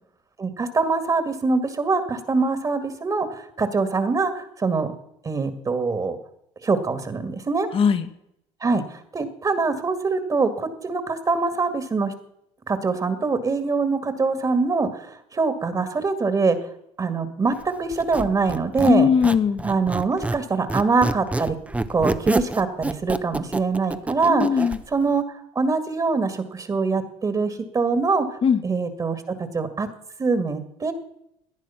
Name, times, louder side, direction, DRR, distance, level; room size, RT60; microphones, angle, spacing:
voice 1, 0.4-4.9 5.2-6.2 6.6-7.7 8.6-12.1 12.7-16.6 17.0-19.1 19.6-21.5 21.9-25.2 25.6-29.9 30.2-30.9, right 4 dB, 30° right, 9 dB, 2.1 m, -24 dB
voice 2, 7.7-8.1 18.9-19.6 24.3-24.8 28.4-28.6, left 6 dB, 45° left, 9 dB, 1.8 m, -19 dB
Squeak, 17.9-20.4 20.7-24.8, right 2 dB, 10° right, 1.0 m, -27 dB
18.0 x 10.5 x 5.8 m, 0.77 s
supercardioid pair, 95°, 13 cm